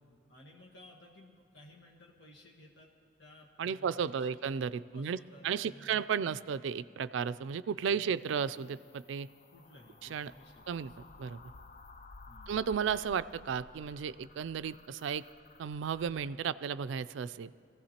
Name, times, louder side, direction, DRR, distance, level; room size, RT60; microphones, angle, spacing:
voice 1, 0.3-2.9 3.2-4.3 4.9-6.3 7.8-8.2 9.5-11.1 12.3-12.5, left 1 dB, 70° left, -2 dB, 1.4 m, -57 dB
voice 2, 3.6-5.2 5.4-9.3 10.0-10.3 10.7-10.9 11.2-11.4 12.5-15.2 15.6-17.5, right 7 dB, 80° right, 15 dB, 0.3 m, -34 dB
sound 1, 8.2-16.4, left 3 dB, 40° left, 0.4 m, -55 dB
23.5 x 15.5 x 2.9 m, 2.3 s
head